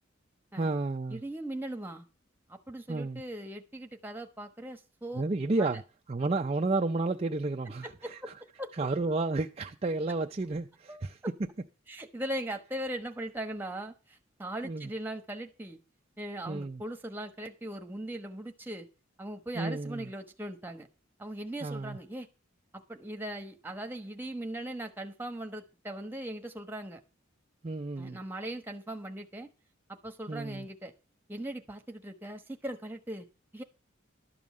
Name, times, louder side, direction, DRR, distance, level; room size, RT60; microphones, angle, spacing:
voice 1, 0.6-1.2 2.9-3.2 5.1-5.8 6.1-8.3 8.7-11.2 14.6-14.9 16.5-16.8 19.5-20.1 21.6-22.0 27.6-28.2 30.3-30.7, right 3 dB, 30° right, 0.5 m, -31 dB
voice 2, 1.1-2.1 2.5-5.2 5.7-5.8 7.8-8.3 8.6-8.7 10.9-11.0 11.9-15.8 16.2-18.9 19.2-20.9 21.2-22.3 22.7-27.0 28.0-29.5 29.9-30.9 31.3-33.3 33.5-33.6, right 1 dB, 10° right, 1.1 m, -39 dB
12.0 x 5.4 x 7.4 m
head